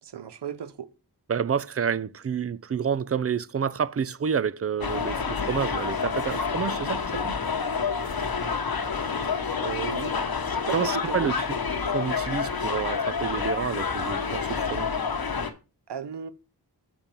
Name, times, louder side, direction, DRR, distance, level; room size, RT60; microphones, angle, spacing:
voice 1, 0.0-0.9 9.4-10.2 10.5-11.4 15.9-16.3, right 8 dB, 75° right, 0.7 m, -35 dB
voice 2, 1.3-7.3 10.7-11.3 11.9-14.9, right 7 dB, 35° right, 0.4 m, -29 dB
sound 1, 4.8-15.5, left 5 dB, 60° left, 1.0 m, -28 dB
7.1 x 4.4 x 5.2 m
wide cardioid pair, 80°, 42 cm